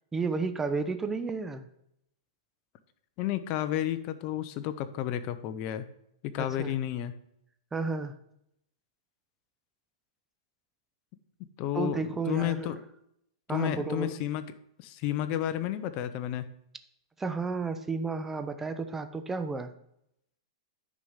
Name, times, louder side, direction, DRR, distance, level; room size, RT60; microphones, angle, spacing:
voice 1, 0.1-1.7 6.4-6.7 7.7-8.1 11.7-12.8 13.5-14.2 17.2-19.7, right 4 dB, 10° right, 9 dB, 0.7 m, -32 dB
voice 2, 3.2-5.9 6.2-7.1 11.6-12.8 13.5-14.4 14.8-16.5, left 12 dB, 35° left, 12 dB, 0.7 m, -31 dB
9.9 x 4.8 x 5.6 m, 0.77 s
hypercardioid pair, 140°, 3 cm